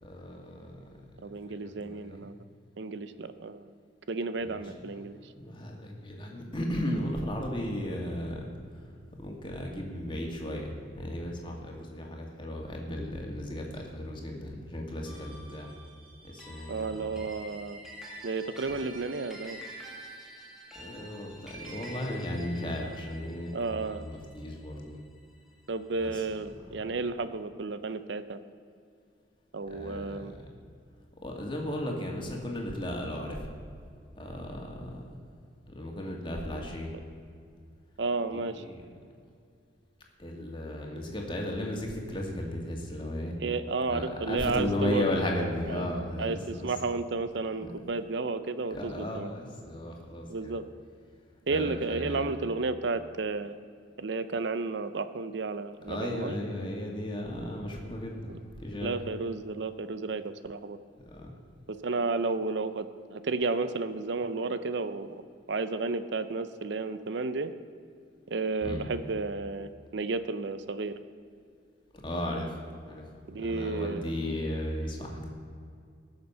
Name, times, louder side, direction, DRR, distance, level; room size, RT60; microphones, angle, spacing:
voice 1, 0.0-2.3 4.4-4.9 5.3-8.9 9.2-15.7 16.2-17.2 20.8-25.0 26.0-26.3 29.7-30.4 31.2-33.5 34.2-35.1 35.7-36.9 38.3-38.8 40.2-43.4 43.9-46.7 47.6-47.7 48.7-50.5 51.5-52.3 55.9-59.0 61.0-61.3 68.6-68.8 72.0-73.1 73.4-75.3, left 1 dB, 25° left, 0 dB, 2.0 m, -35 dB
voice 2, 1.2-2.3 2.8-3.7 4.1-5.3 16.7-17.8 18.2-19.6 23.5-24.0 25.7-28.4 29.5-30.3 38.0-38.6 43.4-45.0 45.7-45.9 46.2-49.3 50.3-50.6 51.5-53.5 54.0-56.4 58.8-60.8 61.7-65.2 65.5-67.5 68.3-70.9 73.3-74.2, right 3 dB, 70° right, 12 dB, 0.6 m, -32 dB
sound 1, 15.1-25.7, right 1 dB, 5° right, 2.2 m, -48 dB
19.5 x 6.8 x 5.6 m, 2.3 s
head